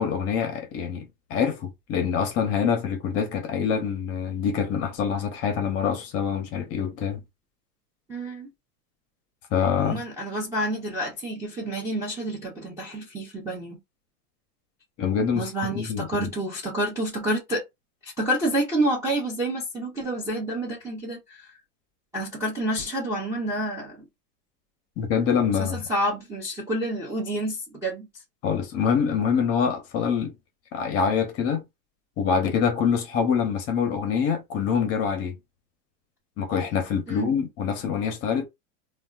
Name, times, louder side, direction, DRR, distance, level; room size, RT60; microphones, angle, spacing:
voice 1, 0.0-7.2 9.5-10.0 15.0-15.5 15.7-16.3 25.0-25.8 28.4-30.3 30.7-31.6 32.2-35.4 36.4-38.5, left 7 dB, 30° left, 0.7 m, -25 dB
voice 2, 8.1-8.5 9.8-13.8 15.3-17.6 18.0-21.4 22.1-24.0 25.6-28.1 37.1-37.3, right 1 dB, 5° right, 0.4 m, -29 dB
3.3 x 2.3 x 2.3 m
supercardioid pair, 130°, 47 cm